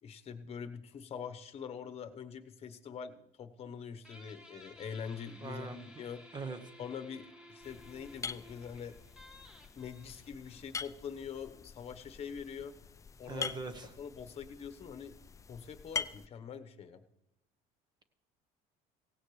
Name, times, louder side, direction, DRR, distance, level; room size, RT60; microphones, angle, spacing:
voice 1, 0.0-6.2 6.8-9.0 9.8-12.8 13.2-13.5 14.0-15.1 15.5-17.0, left 7 dB, 40° left, 8 dB, 1.1 m, -44 dB
Guitar, 4.0-11.2, left 1 dB, 5° right, 2.0 m, -56 dB
voice 2, 5.4-5.8 6.3-6.6 13.3-13.9, right 3 dB, 25° right, 9 dB, 1.1 m, -40 dB
sound 1, 7.6-16.3, left 6 dB, 20° left, 0.4 m, -44 dB
17.0 x 16.5 x 3.3 m, 0.89 s
cardioid pair, 115°, 16 cm